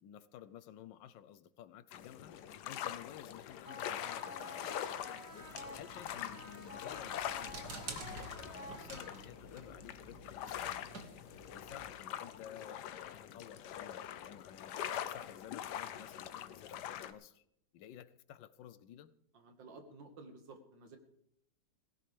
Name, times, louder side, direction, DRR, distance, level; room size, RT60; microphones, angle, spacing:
voice 1, 0.0-2.4 2.6-4.7 5.3-5.5 5.8-11.2 11.5-14.8 15.0-17.4 17.7-19.1, left 10 dB, 90° left, 1.4 m, -54 dB
sound 1, 1.9-17.1, left 10 dB, 70° left, 1.2 m, -44 dB
sound 2, 3.6-9.6, left 2 dB, 10° left, 3.1 m, -51 dB
sound 3, 5.4-11.9, right 3 dB, 60° right, 2.4 m, -51 dB
voice 2, 19.3-21.0, right 3 dB, 85° right, 2.4 m, -53 dB
18.0 x 16.0 x 3.4 m
omnidirectional pair, 1.9 m